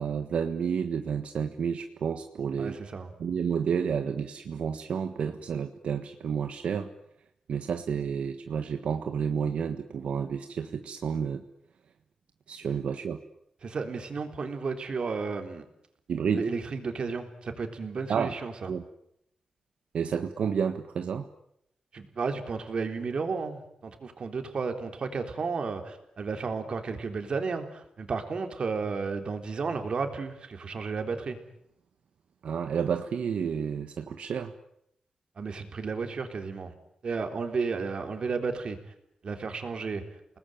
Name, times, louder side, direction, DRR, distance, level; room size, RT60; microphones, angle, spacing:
voice 1, 0.0-2.8 3.2-6.9 7.5-11.4 12.5-13.2 16.1-16.5 18.1-18.3 18.7-18.8 19.9-21.3 32.4-34.5, right 7 dB, 85° right, 7 dB, 1.5 m, -30 dB
voice 2, 2.6-3.1 13.6-15.6 16.3-18.7 21.9-31.4 35.4-36.7 37.0-38.9 39.2-40.0, right 4 dB, 55° right, 6 dB, 3.7 m, -33 dB
30.0 x 19.5 x 9.3 m, 0.76 s
wide cardioid pair, 125°, 2 cm